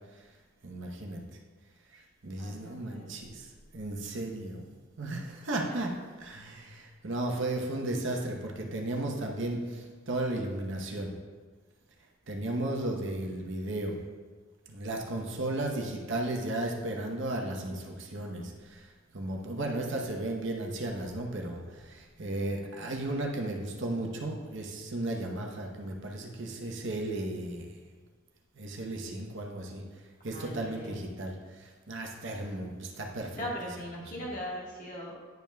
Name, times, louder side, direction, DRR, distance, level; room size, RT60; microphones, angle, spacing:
voice 1, 0.6-1.2 1.9-3.5 3.7-4.7 5.0-5.9 6.2-11.1 12.3-14.0 14.7-27.8 28.6-29.8 30.2-33.4 34.2-34.3, right 1 dB, 55° right, 0 dB, 0.9 m, -35 dB
voice 2, 2.4-3.1 5.5-5.8 30.3-31.0 33.3-35.1, equal, 35° left, -4 dB, 1.4 m, -39 dB
10.5 x 5.3 x 2.3 m, 1.4 s
head